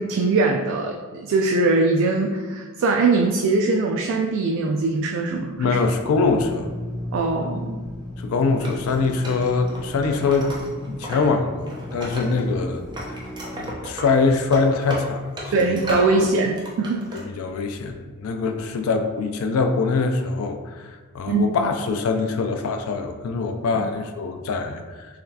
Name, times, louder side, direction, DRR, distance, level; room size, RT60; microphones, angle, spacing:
voice 1, 0.0-5.8 7.1-7.8 15.5-17.0 21.3-21.5 23.7-23.8, right 3 dB, 60° right, 2 dB, 0.3 m, -21 dB
voice 2, 5.6-6.7 8.2-10.5 10.8-13.2 13.5-15.8 17.1-25.2, left 4 dB, 65° left, 6 dB, 0.4 m, -23 dB
Drill, 6.1-14.7, left 1 dB, 20° left, 0.8 m, -36 dB
Wood, 8.6-11.3 11.6-12.6 12.9-16.2 16.5-17.2, equal, 20° right, 0.7 m, -35 dB
4.0 x 3.1 x 2.7 m, 1.4 s
head